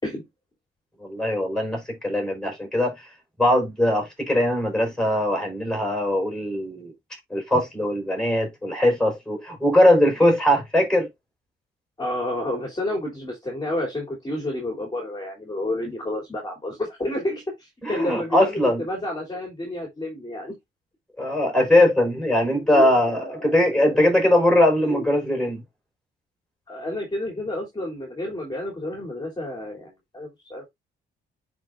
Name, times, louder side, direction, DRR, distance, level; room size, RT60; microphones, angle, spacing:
voice 1, 1.0-2.9 3.4-6.9 7.3-11.1 17.8-18.8 21.2-25.6, left 1 dB, 5° left, 4.7 m, -21 dB
voice 2, 12.0-20.5 22.5-24.1 24.8-25.1 26.7-30.6, left 1 dB, 20° left, 3.1 m, -30 dB
10.0 x 4.6 x 2.5 m
cardioid pair, 90°, 20 cm